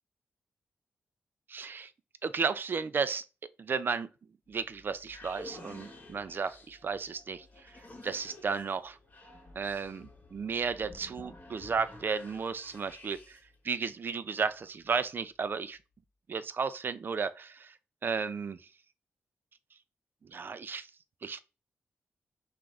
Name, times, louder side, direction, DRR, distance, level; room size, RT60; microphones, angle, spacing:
voice 1, 1.5-1.9 2.2-3.2 3.6-4.1 4.5-7.7 8.0-9.0 9.6-13.4 13.6-15.8 16.3-17.7 18.0-18.6 20.2-20.9 21.2-21.4, right 5 dB, 50° right, 0.4 m, -33 dB
sound 1, 4.5-13.6, left 2 dB, 35° left, 1.2 m, -51 dB
6.0 x 2.5 x 3.3 m
wide cardioid pair, 105°, 5 cm